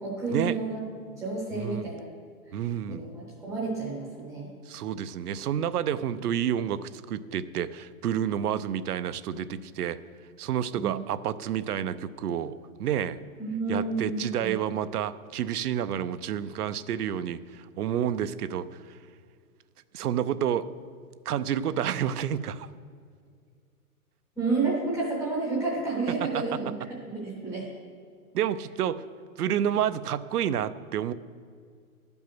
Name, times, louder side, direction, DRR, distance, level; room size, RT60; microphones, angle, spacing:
voice 1, 0.0-2.1 2.5-2.6 2.9-4.5 10.7-11.0 13.4-14.6 24.4-26.7 27.0-27.7, right 3 dB, ahead, -6 dB, 0.7 m, -30 dB
voice 2, 1.5-1.9 2.5-3.1 4.7-10.0 10.4-12.5 12.8-13.2 13.7-19.0 19.9-20.6 21.3-22.7 26.3-26.4 28.3-29.0 29.4-31.1, right 9 dB, 85° right, 14 dB, 0.7 m, -29 dB
12.0 x 5.4 x 6.1 m, 2.1 s
hypercardioid pair, 170°, 45 cm